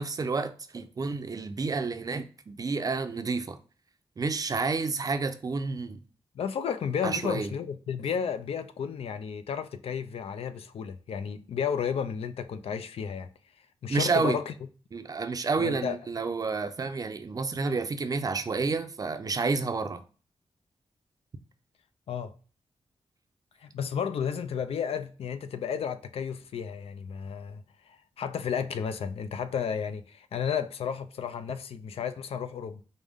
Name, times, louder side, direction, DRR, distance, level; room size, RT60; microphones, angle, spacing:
voice 1, 0.0-3.6 4.2-6.0 7.0-7.5 13.9-14.4 14.9-20.0, right 4 dB, 40° right, 0.4 m, -30 dB
voice 2, 6.4-13.3 13.8-14.5 15.6-16.0 22.1-22.3 23.6-27.6 27.9-32.8, left 7 dB, 80° left, 0.4 m, -32 dB
5.0 x 2.1 x 3.5 m
wide cardioid pair, 95°, 10 cm